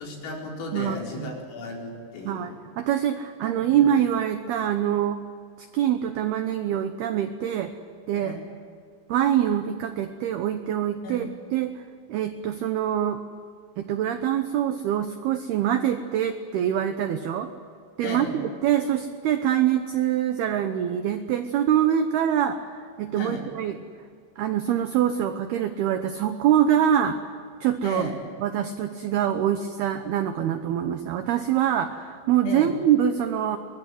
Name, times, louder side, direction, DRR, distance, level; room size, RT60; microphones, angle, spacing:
voice 1, 0.0-2.5 3.5-3.6 8.2-8.4 11.0-11.2 18.0-18.3 23.2-23.4 27.8-28.1 32.5-32.7, left 2 dB, 80° left, -1 dB, 7.5 m, -35 dB
voice 2, 0.7-1.4 2.2-5.2 5.6-7.7 8.1-8.4 9.1-11.8 12.1-13.2 13.8-17.5 18.0-23.8 24.4-27.2 27.6-28.1 28.4-33.6, right 10 dB, 85° right, 8 dB, 2.2 m, -24 dB
23.5 x 21.5 x 9.4 m, 2.2 s
omnidirectional pair, 5.9 m